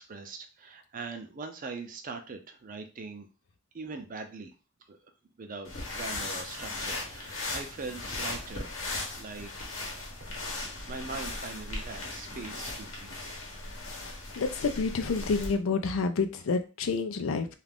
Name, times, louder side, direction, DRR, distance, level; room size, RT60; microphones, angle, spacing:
voice 1, 0.0-3.3 3.7-4.5 4.9-5.0 5.4-9.5 9.8-10.0 10.6-13.4, right 4 dB, 45° right, 6 dB, 0.5 m, -42 dB
sound 1, 5.6-15.6, left 2 dB, 70° left, 1.0 m, -38 dB
voice 2, 13.9-17.5, left 4 dB, 85° left, 8 dB, 0.4 m, -29 dB
2.5 x 2.4 x 3.4 m, 0.32 s
head